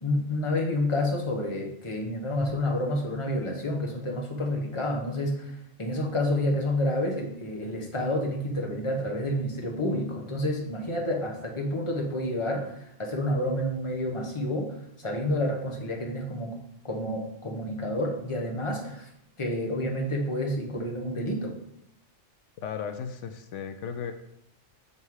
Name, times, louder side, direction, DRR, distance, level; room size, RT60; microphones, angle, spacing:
voice 1, 0.0-16.6 16.8-19.1 19.4-21.5, left 1 dB, 25° left, 0 dB, 1.2 m, -29 dB
voice 2, 22.6-24.1, left 7 dB, 80° left, 8 dB, 1.0 m, -35 dB
6.7 x 5.5 x 4.7 m, 0.77 s
omnidirectional pair, 1.2 m